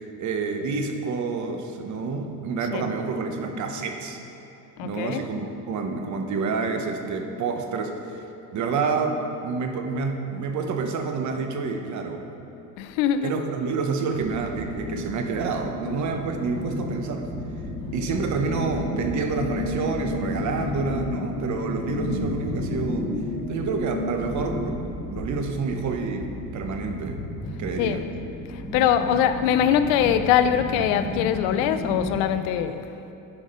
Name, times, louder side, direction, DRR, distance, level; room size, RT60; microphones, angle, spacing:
voice 1, 0.2-4.2 4.8-8.2 8.5-12.3 13.2-17.3 17.9-23.1 23.5-24.8 25.1-27.2 27.6-28.0 29.0-29.1, right 4 dB, 45° right, 4 dB, 0.9 m, -28 dB
voice 2, 4.8-5.2 12.8-13.3 27.8-28.0 28.5-32.9, left 9 dB, 80° left, 10 dB, 0.6 m, -23 dB
sound 1, 14.1-32.2, left 1 dB, 5° right, 1.1 m, -35 dB
sound 2, 14.5-24.8, left 3 dB, 20° left, 0.6 m, -33 dB
11.5 x 4.9 x 5.4 m, 2.8 s
cardioid pair, 140°, 42 cm